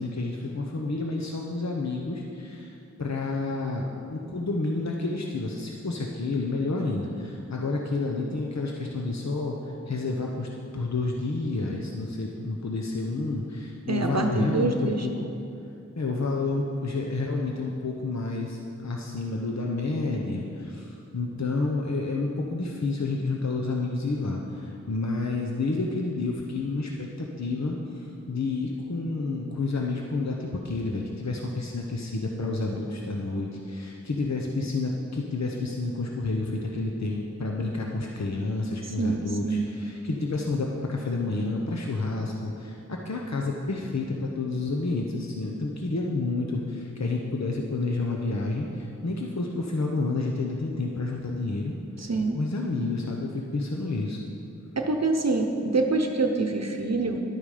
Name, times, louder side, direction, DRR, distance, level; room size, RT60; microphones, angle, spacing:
voice 1, 0.0-9.6 9.9-15.3 16.0-51.7 52.3-54.2, left 3 dB, 65° left, 0 dB, 0.9 m, -30 dB
voice 2, 13.9-15.1 39.0-39.2 39.4-39.6 52.0-52.4 54.8-57.2, right 3 dB, 60° right, 4 dB, 0.8 m, -25 dB
11.5 x 8.8 x 5.0 m, 2.7 s
wide cardioid pair, 50°, 29 cm